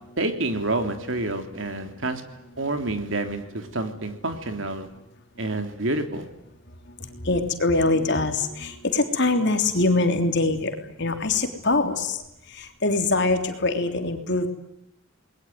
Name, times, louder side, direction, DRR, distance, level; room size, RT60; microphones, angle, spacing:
voice 1, 0.2-2.2 2.6-4.9 5.4-6.2, right 2 dB, 70° right, 7 dB, 3.4 m, -28 dB
voice 2, 7.2-10.7 11.0-12.2 12.6-14.5, left 2 dB, 60° left, 6 dB, 3.4 m, -23 dB
28.5 x 21.0 x 9.5 m, 0.84 s
head